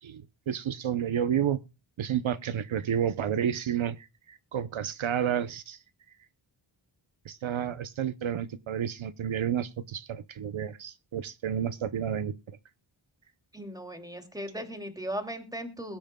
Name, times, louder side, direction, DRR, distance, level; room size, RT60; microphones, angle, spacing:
voice 1, 0.0-1.6 2.0-5.8 7.2-12.3, right 9 dB, 75° right, 0.8 m, -30 dB
voice 2, 13.5-16.0, equal, 10° right, 2.5 m, -37 dB
22.0 x 8.7 x 2.2 m
wide cardioid pair, 80°, 48 cm